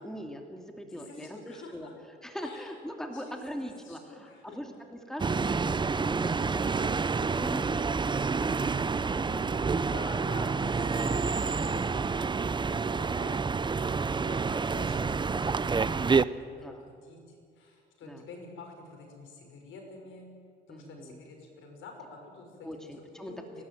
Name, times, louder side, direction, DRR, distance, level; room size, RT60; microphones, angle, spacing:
voice 1, 0.0-1.9 2.2-6.9 7.3-8.0 8.4-8.6 8.9-9.4 10.6-10.7 11.0-11.2 11.5-11.6 13.7-14.2 16.6-16.9 18.1-18.3 20.7-21.2 22.6-23.6, equal, 5° left, 3 dB, 2.6 m, -42 dB
voice 2, 0.8-1.9 2.4-2.7 3.1-4.6 9.4-13.9 14.2-20.2 20.7-22.7 23.2-23.6, left 3 dB, 80° left, 2 dB, 6.1 m, -48 dB
sound 1, 5.2-16.2, right 4 dB, 25° right, 0.7 m, -28 dB
30.0 x 12.5 x 9.3 m, 2.2 s
cardioid pair, 90°, 20 cm